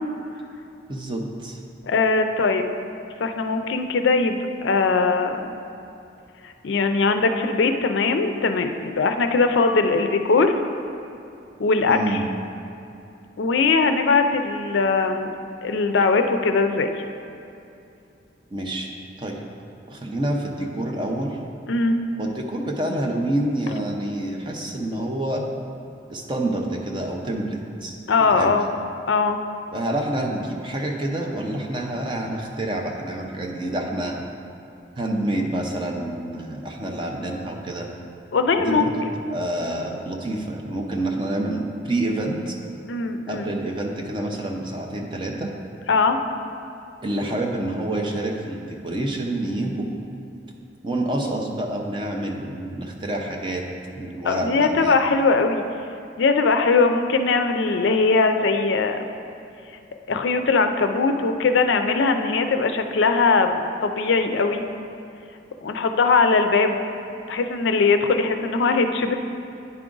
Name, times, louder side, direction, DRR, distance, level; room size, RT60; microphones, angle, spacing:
voice 1, 0.9-1.6 11.9-12.3 18.5-18.9 19.2-19.4 19.9-21.4 22.2-25.5 26.1-28.5 29.7-34.2 35.0-37.9 38.6-39.0 39.3-42.6 43.3-45.5 47.0-49.9 50.8-53.7 54.0-55.0, right 1 dB, 25° right, 1 dB, 0.6 m, -27 dB
voice 2, 1.8-2.6 3.2-5.5 6.6-10.5 11.6-12.2 13.4-15.3 15.6-16.9 21.7-22.0 28.1-28.7 29.1-29.4 38.3-38.9 42.9-43.5 45.9-46.2 47.2-47.3 54.2-55.6 56.2-59.0 60.1-64.6 65.6-66.8 67.3-69.2, left 4 dB, 65° left, 7 dB, 0.4 m, -20 dB
9.6 x 4.8 x 3.8 m, 2.7 s
head